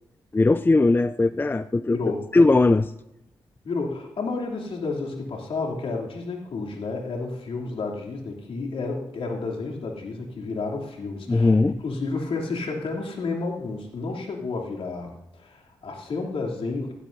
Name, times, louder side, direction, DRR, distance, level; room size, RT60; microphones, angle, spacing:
voice 1, 0.3-2.0 2.3-2.9 11.3-11.7, left 3 dB, 20° left, 12 dB, 0.4 m, -19 dB
voice 2, 1.9-2.2 3.6-11.6 11.8-16.9, left 3 dB, 65° left, -1 dB, 2.9 m, -31 dB
16.0 x 12.0 x 2.7 m, 0.87 s
supercardioid pair, 45°, 10 cm